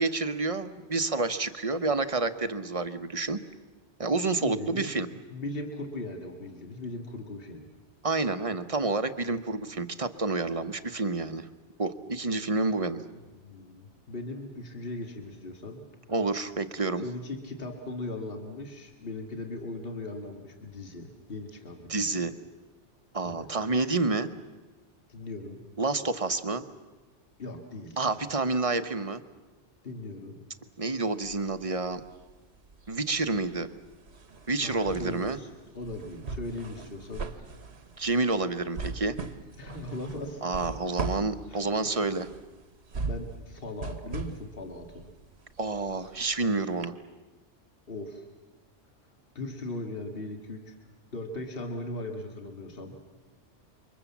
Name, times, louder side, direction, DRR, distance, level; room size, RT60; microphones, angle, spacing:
voice 1, 0.0-3.4 4.0-5.1 8.0-11.5 11.8-13.0 16.1-17.0 21.9-22.3 23.1-24.3 25.8-26.6 28.0-29.2 30.8-32.0 32.9-33.7 34.5-35.4 38.0-39.2 40.4-42.3 45.6-46.9, right 3 dB, 30° right, 10 dB, 1.0 m, -29 dB
voice 2, 4.4-5.0 5.3-7.7 13.4-15.8 17.0-22.2 23.2-23.5 25.1-25.6 27.4-28.0 29.8-30.4 34.6-35.5 35.7-37.5 39.6-40.4 41.5-41.7 43.1-45.0 47.9-48.3 49.3-50.8 51.1-53.0, left 2 dB, 50° left, 3 dB, 2.4 m, -38 dB
sound 1, 31.2-32.4 32.7-46.4 46.8-46.9, right 4 dB, 65° right, 1.4 m, -39 dB
28.0 x 24.0 x 7.3 m, 1.2 s
omnidirectional pair, 1.2 m